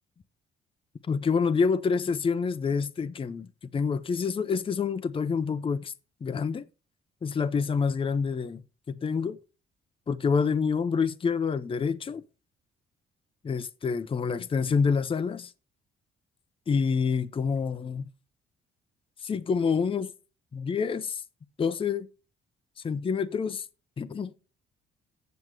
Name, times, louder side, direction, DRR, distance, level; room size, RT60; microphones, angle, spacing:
voice 1, 1.1-5.9 6.2-6.7 7.2-9.4 10.1-12.2 13.4-15.5 16.7-18.1 19.2-20.1 20.5-21.2 21.6-22.1 22.8-23.7 24.0-24.3, left 5 dB, 25° left, 0.6 m, -27 dB
7.9 x 7.3 x 4.7 m
cardioid pair, 90°, 20 cm